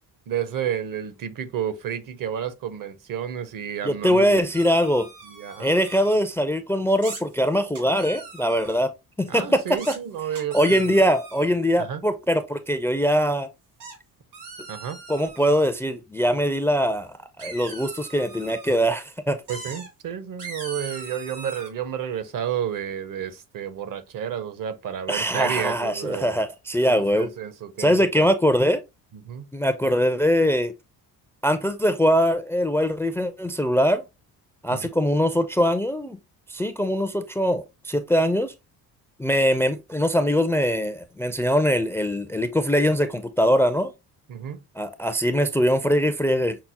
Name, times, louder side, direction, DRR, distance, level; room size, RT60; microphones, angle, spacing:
voice 1, 0.3-4.4 5.3-5.7 9.3-10.9 11.8-12.0 14.7-15.0 19.5-26.3 26.9-28.3 29.2-29.5 34.7-34.8 44.3-44.6, right 9 dB, 55° right, 0.7 m, -31 dB
voice 2, 3.8-5.1 5.6-8.9 9.2-9.9 10.5-13.5 15.1-19.4 25.1-27.3 27.8-28.8 29.5-30.7 31.4-34.0 34.6-36.2 36.5-38.5 39.2-43.9 44.8-46.6, equal, 5° left, 0.4 m, -22 dB
sound 1, 4.5-6.1 7.0-7.2 7.7-8.8 9.8-10.0 10.3-11.5 13.8-13.9 14.3-15.7 17.4-18.8 19.5-19.9 20.4-21.7, right 4 dB, 75° right, 2.2 m, -40 dB
5.8 x 2.0 x 2.8 m
supercardioid pair, 75°, 40 cm